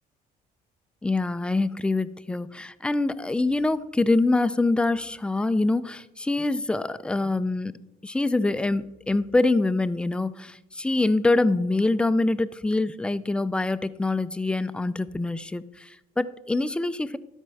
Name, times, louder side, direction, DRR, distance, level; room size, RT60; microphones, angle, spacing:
voice 1, 1.0-7.7 8.0-17.2, left 2 dB, 5° left, 14 dB, 0.4 m, -25 dB
12.5 x 4.4 x 6.3 m, 0.91 s
cardioid pair, 110°, 17 cm